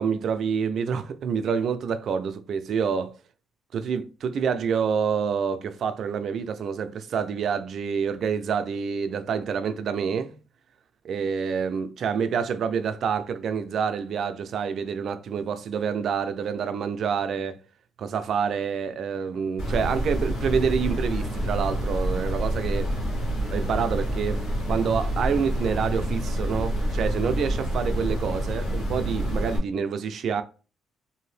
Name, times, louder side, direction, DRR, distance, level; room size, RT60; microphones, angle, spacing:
voice 1, 0.0-3.1 3.7-10.3 11.1-17.6 18.0-22.9 23.5-30.4, right 6 dB, 65° right, 0.4 m, -27 dB
sound 1, 19.6-29.6, equal, 85° left, 1.4 m, -27 dB
2.7 x 2.6 x 3.2 m
cardioid pair, 90°, 0 cm